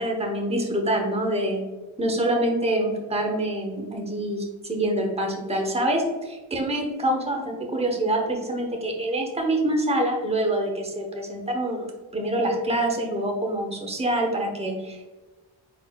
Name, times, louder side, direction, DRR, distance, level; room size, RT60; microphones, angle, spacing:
voice 1, 0.0-1.6 2.0-11.8 12.1-15.1, right 1 dB, 15° right, 2 dB, 0.9 m, -26 dB
4.5 x 4.0 x 2.3 m, 1.2 s
cardioid pair, 75°, 49 cm